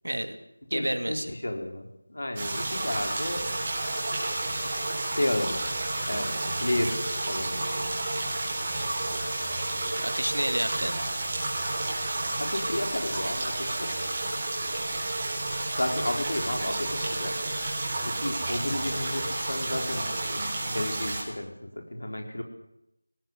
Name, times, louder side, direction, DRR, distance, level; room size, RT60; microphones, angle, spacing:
voice 1, 0.0-0.4 0.7-1.3 10.0-11.0, right 1 dB, 70° right, 8 dB, 2.7 m, -30 dB
voice 2, 0.7-3.5 5.1-5.7 6.1-7.9 10.6-10.7 12.4-14.3 15.8-17.4 18.0-22.4, left 1 dB, 60° left, 4 dB, 4.2 m, -32 dB
sound 1, 2.4-21.2, right 2 dB, 20° right, 4.1 m, -31 dB
19.5 x 18.0 x 7.8 m, 0.84 s
figure-of-eight pair, 170°, 0 cm